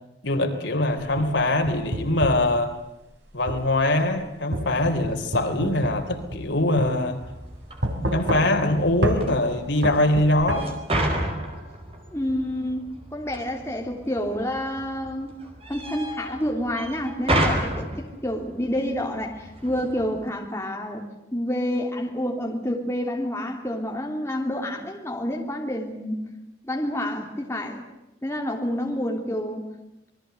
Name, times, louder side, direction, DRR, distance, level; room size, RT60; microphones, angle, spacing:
voice 1, 0.2-2.7 3.3-7.2 8.0-10.7, left 1 dB, 80° left, 6 dB, 3.5 m, -23 dB
sound 1, 1.0-2.5 3.5-3.7 4.5-6.5 6.8-6.9 7.8-8.7 9.0-9.2 9.8-10.6, right 1 dB, 75° right, 4.2 m, -28 dB
sound 2, 7.2-20.3, right 1 dB, 30° right, 4.7 m, -32 dB
voice 2, 12.1-15.4 15.7-21.0 21.3-26.2 26.6-27.8 28.2-29.7, equal, 15° left, 1 dB, 3.3 m, -28 dB
27.5 x 21.0 x 7.9 m, 0.90 s
head